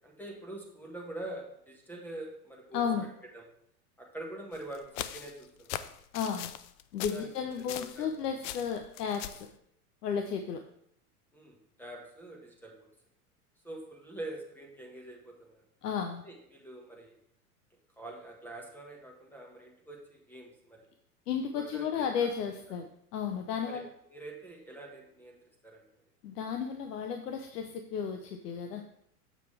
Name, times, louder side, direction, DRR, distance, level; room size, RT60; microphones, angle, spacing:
voice 1, 0.0-2.9 3.3-3.4 4.0-5.9 7.1-7.3 7.6-8.1 11.3-12.9 13.6-15.6 16.2-17.2 18.0-20.8 21.5-22.3 23.6-23.8 24.1-25.4 25.6-25.8, right 1 dB, 5° left, 0 dB, 1.5 m, -45 dB
voice 2, 2.7-3.1 6.1-6.5 6.9-9.5 10.0-10.6 15.8-16.2 21.3-23.9 26.2-28.8, left 7 dB, 85° left, 5 dB, 0.9 m, -33 dB
sound 1, 4.5-8.1 8.4-9.5, left 12 dB, 50° left, 0.5 m, -40 dB
7.5 x 5.7 x 3.3 m, 0.72 s
hypercardioid pair, 115°, 46 cm